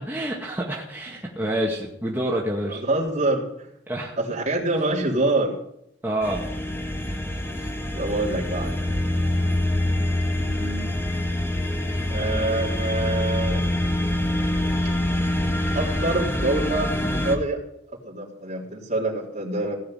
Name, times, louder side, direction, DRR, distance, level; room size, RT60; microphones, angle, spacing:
voice 1, 0.1-2.8 3.9-4.2 6.0-6.4, right 1 dB, 10° right, -3 dB, 2.0 m, -27 dB
voice 2, 2.7-3.5 4.2-5.5 7.6-7.7 7.9-8.8 10.4-10.9 12.1-13.6 15.7-17.6 18.0-19.8, right 2 dB, 40° right, -3 dB, 3.8 m, -26 dB
sound 1, 6.2-17.4, left 1 dB, 15° left, 1.7 m, -25 dB
17.5 x 6.7 x 9.4 m, 0.79 s
head